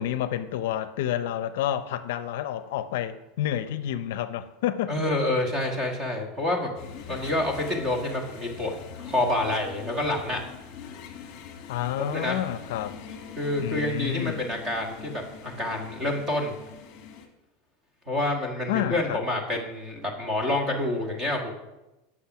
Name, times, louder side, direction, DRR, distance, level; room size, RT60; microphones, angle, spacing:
voice 1, 0.0-4.9 7.1-7.2 11.7-12.9 13.6-14.4 18.7-19.2, left 11 dB, 65° left, 0.5 m, -29 dB
voice 2, 4.9-6.7 7.1-10.4 12.1-12.4 13.4-16.6 18.1-21.5, left 1 dB, 20° right, 1.5 m, -28 dB
sound 1, 6.7-17.3, left 6 dB, 35° left, 1.4 m, -43 dB
8.5 x 6.6 x 5.9 m
supercardioid pair, 175°, 0 cm